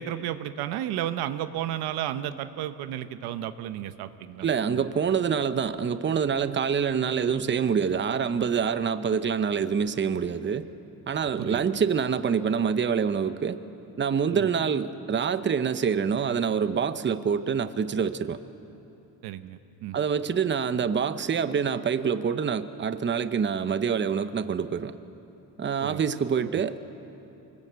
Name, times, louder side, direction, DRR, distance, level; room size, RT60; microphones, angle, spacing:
voice 1, 0.0-4.4 4.7-4.9 11.4-11.6 14.3-14.5 19.2-20.0 25.8-26.1, right 11 dB, 90° right, 11 dB, 1.0 m, -33 dB
voice 2, 4.4-10.6 11.1-13.6 14.0-18.4 19.9-25.0 25.6-26.8, right 6 dB, 30° right, 12 dB, 0.9 m, -26 dB
24.5 x 20.5 x 8.1 m, 2.9 s
cardioid pair, 95°, 37 cm